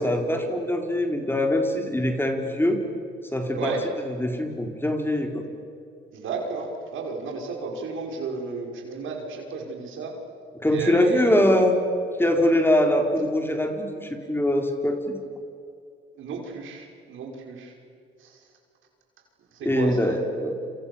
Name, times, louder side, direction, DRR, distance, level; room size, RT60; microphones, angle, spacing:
voice 1, 0.0-2.8 3.3-3.7 4.1-5.4 10.6-11.8 12.2-15.1 19.6-20.5, left 1 dB, 10° left, 4 dB, 4.4 m, -23 dB
voice 2, 3.5-3.8 6.1-10.1 10.6-11.4 16.2-17.7 18.2-18.4 19.5-20.2, right 4 dB, 80° right, 2 dB, 5.9 m, -33 dB
29.5 x 27.0 x 7.2 m, 2.4 s
cardioid pair, 90°, 20 cm